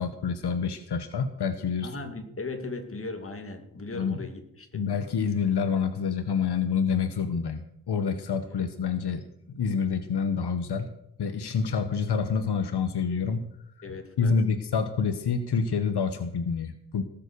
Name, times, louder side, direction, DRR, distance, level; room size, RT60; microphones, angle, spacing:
voice 1, 0.0-1.9 3.9-4.2 4.7-9.2 9.5-10.9 11.2-13.5 14.2-17.0, left 6 dB, 80° left, 9 dB, 1.2 m, -27 dB
voice 2, 1.8-4.8 8.5-8.7 13.8-14.4, left 3 dB, 35° left, 4 dB, 2.4 m, -38 dB
18.5 x 7.5 x 6.8 m, 0.76 s
wide cardioid pair, 150°, 39 cm